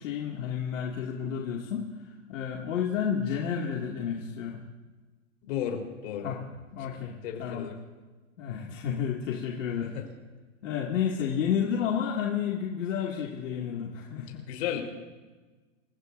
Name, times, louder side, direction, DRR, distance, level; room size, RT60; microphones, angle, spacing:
voice 1, 0.0-4.6 6.2-6.4 6.7-7.6 8.4-9.9 10.6-14.4, left 8 dB, 70° left, -2 dB, 2.5 m, -31 dB
voice 2, 5.4-6.3 7.2-7.8 9.8-10.0 14.3-14.8, left 9 dB, 50° left, 2 dB, 4.2 m, -34 dB
28.5 x 16.0 x 2.7 m, 1.3 s
hypercardioid pair, 145°, 40 cm